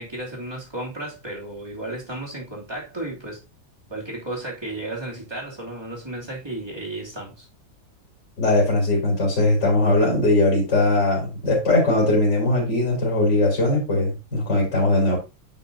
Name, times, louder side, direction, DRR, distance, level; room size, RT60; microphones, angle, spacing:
voice 1, 0.0-3.4 3.9-7.5, right 1 dB, 10° right, 2.7 m, -33 dB
voice 2, 8.4-15.2, left 2 dB, 55° left, 4.1 m, -20 dB
10.0 x 5.6 x 2.7 m
omnidirectional pair, 2.2 m